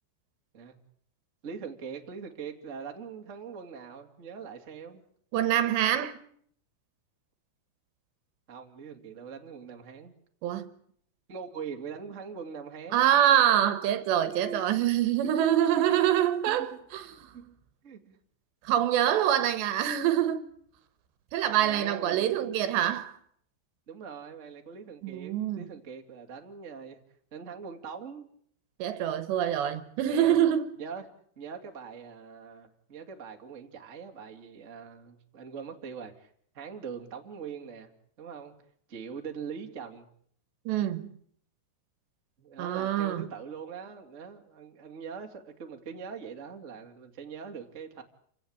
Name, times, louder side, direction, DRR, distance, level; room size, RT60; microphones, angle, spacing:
voice 1, 1.4-5.0 8.5-10.1 11.3-13.1 14.2-14.8 15.2-15.8 16.4-16.6 17.3-17.6 17.8-18.2 21.5-22.3 23.9-27.0 27.3-28.3 30.0-30.3 30.8-31.1 31.3-36.3 36.5-37.9 38.2-38.5 38.9-40.1 42.4-48.0, right 6 dB, 25° right, 1.7 m, -42 dB
voice 2, 5.3-6.2 10.4-10.7 12.9-17.3 18.6-20.5 21.3-23.2 25.0-25.7 28.8-30.7 40.7-41.1 42.6-43.2, right 11 dB, 75° right, 3.3 m, -25 dB
28.5 x 17.0 x 8.9 m
omnidirectional pair, 5.3 m